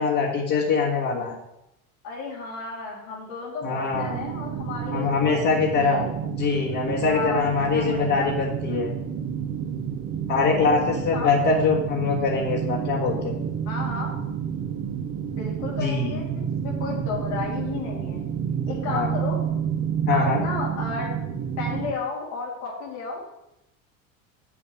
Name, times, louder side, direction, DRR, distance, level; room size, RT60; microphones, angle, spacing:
voice 1, 0.0-1.4 3.6-4.2 4.9-8.9 10.3-13.4 15.8-16.2 18.9-19.2 20.1-20.4, left 4 dB, 45° left, -4 dB, 1.7 m, -23 dB
voice 2, 2.0-6.1 7.1-8.3 10.3-10.8 11.1-11.7 13.6-14.1 15.3-18.2 18.7-19.4 20.1-21.1 21.6-23.3, left 4 dB, 85° left, -5 dB, 3.2 m, -33 dB
sound 1, 3.9-21.9, right 8 dB, 30° right, 0.8 m, -29 dB
7.2 x 7.1 x 4.9 m, 0.86 s
supercardioid pair, 115°, 41 cm